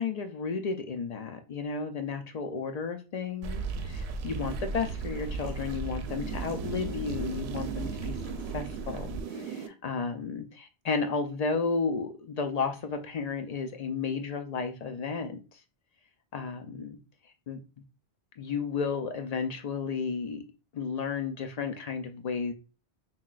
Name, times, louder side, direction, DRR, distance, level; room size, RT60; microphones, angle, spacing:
voice 1, 0.0-3.6 4.2-8.2 8.5-15.4 16.3-17.0 17.5-17.6 18.4-20.4 20.7-22.5, left 5 dB, 55° left, 6 dB, 0.4 m, -33 dB
sound 1, 3.4-9.7, right 4 dB, 80° right, 0.8 m, -35 dB
5.6 x 2.2 x 2.4 m, 0.32 s
omnidirectional pair, 1.1 m